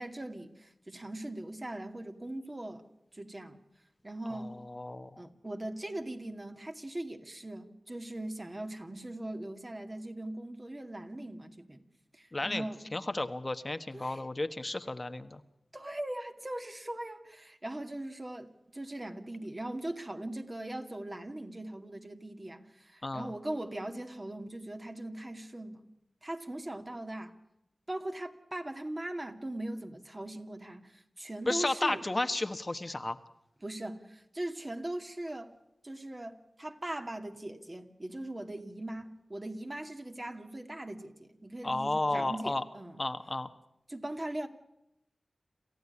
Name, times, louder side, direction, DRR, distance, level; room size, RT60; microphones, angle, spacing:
voice 1, 0.0-2.8 3.1-3.6 4.0-4.6 5.2-11.8 12.1-12.8 13.9-14.2 15.7-25.8 26.2-27.4 27.9-32.0 33.6-35.5 35.8-43.0 43.9-44.5, right 1 dB, 30° right, 5 dB, 2.3 m, -40 dB
voice 2, 4.3-5.1 12.3-12.7 12.9-15.4 23.0-23.3 31.5-33.2 41.6-42.6 43.0-43.5, left 2 dB, 35° left, 9 dB, 1.2 m, -33 dB
28.0 x 15.0 x 9.7 m, 0.85 s
wide cardioid pair, 60°, 0 cm